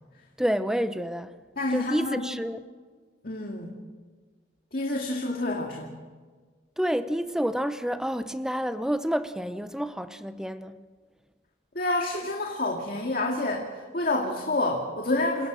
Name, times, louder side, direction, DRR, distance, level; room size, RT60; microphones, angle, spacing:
voice 1, 0.4-1.3 1.7-2.6 6.8-10.7, equal, 5° right, 0.8 m, -29 dB
voice 2, 1.6-2.3 3.2-3.7 4.7-5.9 11.7-15.5, left 2 dB, 50° left, 2.3 m, -28 dB
28.0 x 17.5 x 6.3 m
head